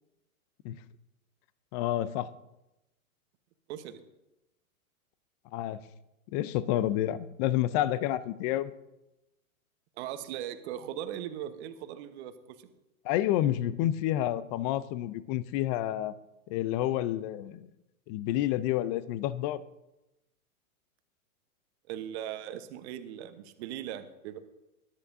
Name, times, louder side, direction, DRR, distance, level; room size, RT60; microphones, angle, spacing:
voice 1, 1.7-2.3 5.5-5.8 6.3-8.7 13.0-16.1 16.5-17.7 18.1-19.6, left 13 dB, 30° left, 17 dB, 0.5 m, -29 dB
voice 2, 3.7-4.0 10.0-12.7 21.9-24.4, right 11 dB, 50° right, 9 dB, 1.1 m, -39 dB
21.0 x 10.0 x 2.7 m, 0.94 s
hypercardioid pair, 120°, 43 cm